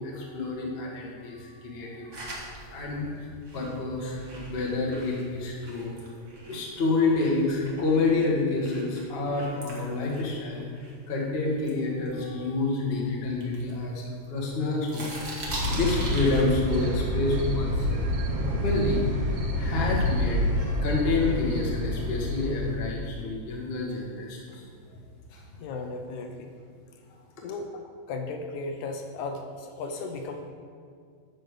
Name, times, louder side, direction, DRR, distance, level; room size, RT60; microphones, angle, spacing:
voice 1, 0.0-5.9 6.5-10.6 11.1-15.1 15.7-18.1 18.4-24.6 25.3-25.4, left 3 dB, 55° left, -2 dB, 0.6 m, -28 dB
sound 1, 2.1-6.7 7.1-11.2 11.6-12.8 13.3-14.5 14.8-16.8, right 1 dB, 40° right, 1.1 m, -41 dB
sound 2, 15.5-22.8, left 1 dB, 60° right, 2.0 m, -28 dB
voice 2, 25.6-26.5 27.4-27.8 28.1-30.5, left 3 dB, 75° left, 4 dB, 1.9 m, -35 dB
9.6 x 5.3 x 6.6 m, 2.2 s
omnidirectional pair, 3.8 m